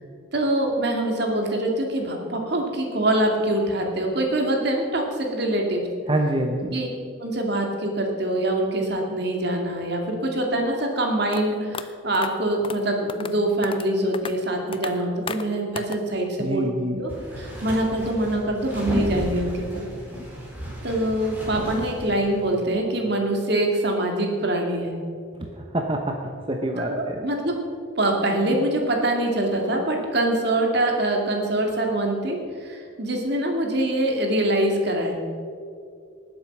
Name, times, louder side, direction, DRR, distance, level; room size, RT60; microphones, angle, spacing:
voice 1, 0.3-5.8 6.7-6.9 7.2-16.7 17.0-19.8 20.8-24.9 26.8-27.6 28.0-35.2, right 1 dB, 60° right, 1 dB, 2.4 m, -24 dB
voice 2, 6.1-6.7 16.4-17.0 25.4-27.3, right 1 dB, 25° right, 2 dB, 0.8 m, -26 dB
sound 1, 11.3-11.4 11.7-11.8 12.1-12.3 12.6-12.8 13.1-13.3 13.6-13.9 14.1-14.3 14.7-14.9 15.3-15.4 15.8-16.0, left 5 dB, 30° left, 0.6 m, -33 dB
sound 2, 17.1-22.5, equal, 10° right, 4.2 m, -33 dB
19.0 x 7.8 x 6.0 m, 2.3 s
head